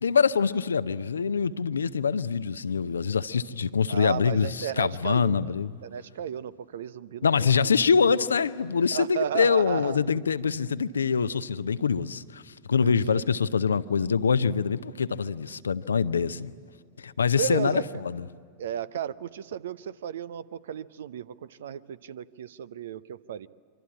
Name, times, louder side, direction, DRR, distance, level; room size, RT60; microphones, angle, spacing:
voice 1, 0.0-5.7 7.2-12.4 12.7-16.5 17.0-18.3, left 6 dB, 70° left, 0.6 m, -24 dB
voice 2, 3.9-5.5 5.8-7.5 8.9-10.0 12.8-13.2 17.3-18.0 18.6-23.5, right 9 dB, 60° right, 0.6 m, -34 dB
25.5 x 25.0 x 8.7 m
figure-of-eight pair, 90°, 0 cm